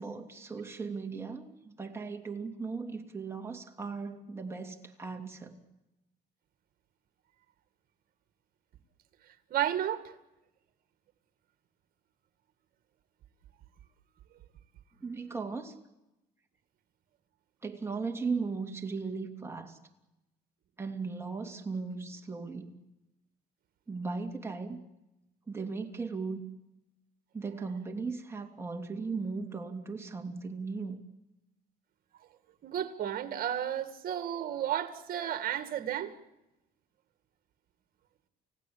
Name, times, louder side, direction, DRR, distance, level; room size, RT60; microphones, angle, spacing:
voice 1, 0.0-5.6 15.0-15.7 17.6-19.8 20.8-22.8 23.9-24.8 25.5-26.4 27.3-31.0, right 4 dB, 15° right, 2.8 m, -37 dB
voice 2, 9.5-10.1 32.6-36.1, right 10 dB, 60° right, 2.1 m, -32 dB
30.0 x 16.5 x 8.7 m
cardioid pair, 110°, 17 cm